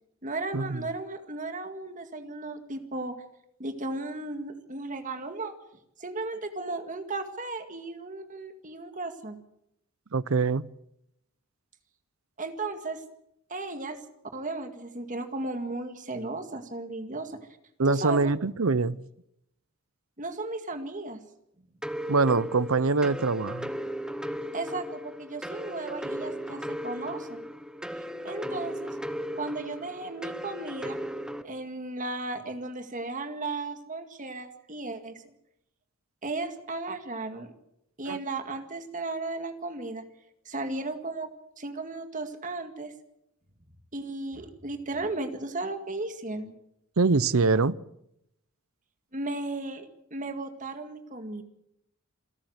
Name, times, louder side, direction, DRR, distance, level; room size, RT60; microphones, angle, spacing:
voice 1, 0.2-3.1 3.6-5.6 6.0-9.4 12.4-13.0 13.5-14.0 14.3-17.4 17.9-18.3 20.2-21.2 24.5-27.4 28.2-29.0 29.4-31.0 31.4-35.3 36.2-37.5 38.0-40.1 40.5-41.3 41.6-42.9 43.9-46.5 49.1-51.4, right 2 dB, 35° right, 2.0 m, -35 dB
voice 2, 10.1-10.7 17.8-19.1 22.1-23.7 38.1-38.2 47.0-47.8, right 4 dB, 65° right, 0.7 m, -24 dB
sound 1, 21.8-31.4, equal, 5° right, 1.0 m, -36 dB
27.0 x 13.0 x 8.1 m
head